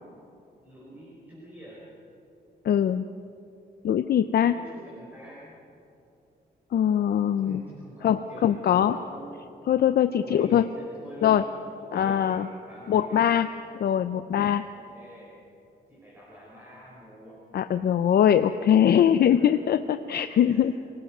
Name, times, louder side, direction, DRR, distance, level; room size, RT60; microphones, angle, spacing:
voice 1, 0.6-1.8 4.4-5.6 7.3-9.5 10.1-13.4 14.7-15.3 15.9-17.4 18.8-19.5 20.4-20.7, equal, 10° right, -5 dB, 5.1 m, -46 dB
voice 2, 2.6-3.0 3.8-4.6 6.7-7.6 8.0-9.0 9.7-10.6 11.2-11.4 11.9-12.5 12.9-13.5 13.8-14.6 17.5-20.7, left 9 dB, 65° left, 10 dB, 0.6 m, -22 dB
26.5 x 18.5 x 6.1 m, 2.8 s
wide cardioid pair, 145°, 17 cm